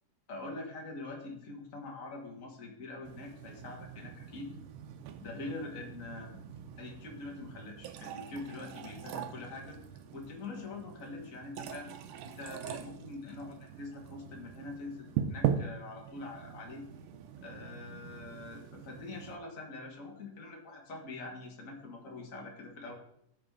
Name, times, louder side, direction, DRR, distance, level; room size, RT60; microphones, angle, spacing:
voice 1, 0.3-4.5 5.2-6.4 6.8-9.8 10.1-11.9 12.2-16.9 17.4-22.9, left 3 dB, 45° left, 1 dB, 1.0 m, -44 dB
sound 1, 3.0-19.4, right 9 dB, 80° right, 2.2 m, -41 dB
14.5 x 5.0 x 3.7 m, 0.74 s
omnidirectional pair, 3.7 m